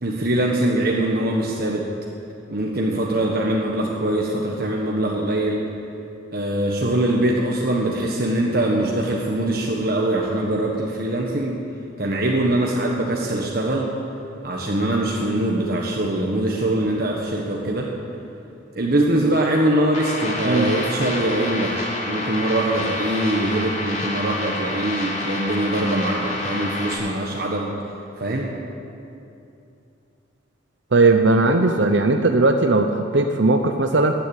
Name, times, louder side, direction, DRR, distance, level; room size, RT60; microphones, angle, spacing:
voice 1, 0.0-1.9 2.5-5.6 6.3-11.6 12.0-14.0 14.4-17.9 18.7-27.7 28.2-28.6, right 1 dB, 50° right, -2 dB, 1.4 m, -22 dB
sound 1, 19.9-26.9, left 1 dB, 40° left, 2.8 m, -28 dB
voice 2, 30.9-34.1, right 3 dB, 65° right, 5 dB, 0.8 m, -18 dB
15.5 x 10.0 x 8.9 m, 2.7 s
head